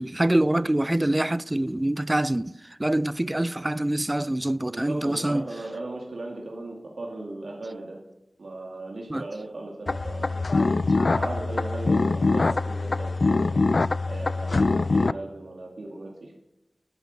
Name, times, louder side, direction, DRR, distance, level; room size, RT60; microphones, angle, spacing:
voice 1, 0.0-5.5 9.1-9.2, right 1 dB, 25° right, 0.5 m, -25 dB
voice 2, 4.7-8.0 8.4-10.4 11.0-13.5 14.1-16.4, right 2 dB, 90° right, 2.3 m, -37 dB
sound 1, 9.9-15.1, left 3 dB, 65° left, 0.4 m, -23 dB
12.5 x 9.4 x 7.7 m
cardioid pair, 40°, 0 cm